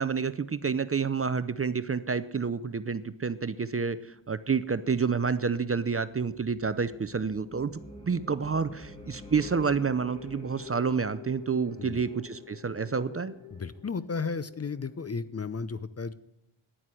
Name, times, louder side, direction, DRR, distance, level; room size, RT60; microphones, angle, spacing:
voice 1, 0.0-7.7 8.0-13.3, right 5 dB, 30° right, 14 dB, 0.6 m, -29 dB
sound 1, 6.0-15.2, left 4 dB, 10° left, 2.3 m, -48 dB
voice 2, 13.5-16.1, left 5 dB, 30° left, 15 dB, 0.6 m, -34 dB
10.0 x 9.3 x 7.6 m, 0.84 s
cardioid pair, 65°, 49 cm